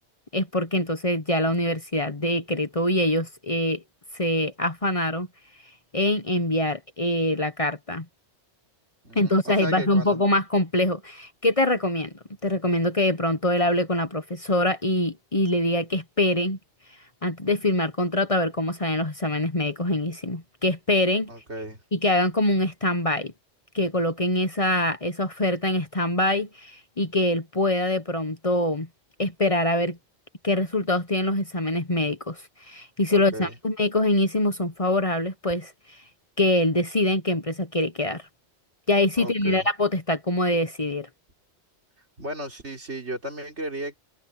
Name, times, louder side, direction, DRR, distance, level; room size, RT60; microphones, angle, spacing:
voice 1, 0.3-3.8 4.1-5.3 5.9-8.0 9.1-12.1 12.4-16.6 17.2-21.3 21.9-23.3 23.7-28.9 29.2-30.0 30.4-35.7 36.4-38.2 38.9-41.1, left 1 dB, 30° left, 1.2 m, -24 dB
voice 2, 9.0-10.2 21.3-21.8 33.1-33.5 39.2-39.7 42.2-44.0, right 1 dB, 75° right, 4.4 m, -34 dB
omnidirectional pair, 1.2 m